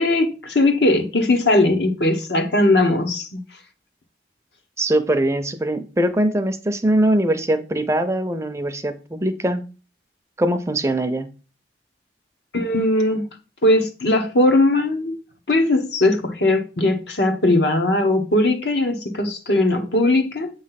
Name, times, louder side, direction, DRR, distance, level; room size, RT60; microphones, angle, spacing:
voice 1, 0.0-3.3 12.5-13.2 13.6-15.2 15.5-20.5, left 2 dB, 75° left, 1.1 m, -19 dB
voice 2, 4.8-9.6 10.4-11.3, right 1 dB, 15° right, 0.4 m, -21 dB
7.9 x 3.1 x 5.7 m
head